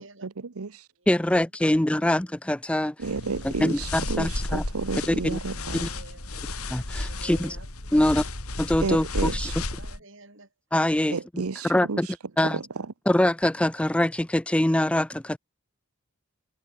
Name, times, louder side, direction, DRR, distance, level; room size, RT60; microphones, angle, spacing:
voice 1, 0.0-0.9 3.0-5.9 8.8-9.6 11.1-12.1 12.4-12.9, right 4 dB, 90° right, 0.8 m, -32 dB
voice 2, 1.1-2.9 3.4-4.6 5.0-5.4 5.8-5.9 6.7-7.6 7.9-8.2 8.6-9.5 10.7-11.2 11.6-12.1 12.4-12.6 13.1-15.4, left 1 dB, 5° left, 0.3 m, -24 dB
sound 1, 3.0-10.0, left 2 dB, 90° left, 3.8 m, -33 dB
voice 3, 3.3-3.9 5.0-6.5 7.0-7.7 7.9-8.3 9.4-10.5 11.0-11.2 12.0-12.1, right 2 dB, 60° right, 6.8 m, -50 dB
head